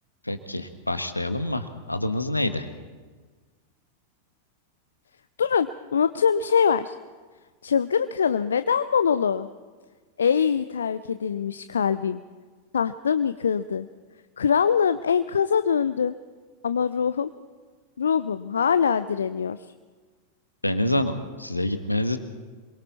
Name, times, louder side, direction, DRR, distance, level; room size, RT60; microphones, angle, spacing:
voice 1, 0.2-2.7 20.6-22.2, left 1 dB, 85° left, 9 dB, 1.4 m, -27 dB
voice 2, 5.4-7.0 7.6-9.5 10.2-12.2 12.7-13.9 14.4-16.1 16.6-17.3 18.0-19.6, left 7 dB, 70° left, 13 dB, 0.5 m, -23 dB
27.0 x 23.0 x 4.3 m, 1.5 s
figure-of-eight pair, 90°, 0 cm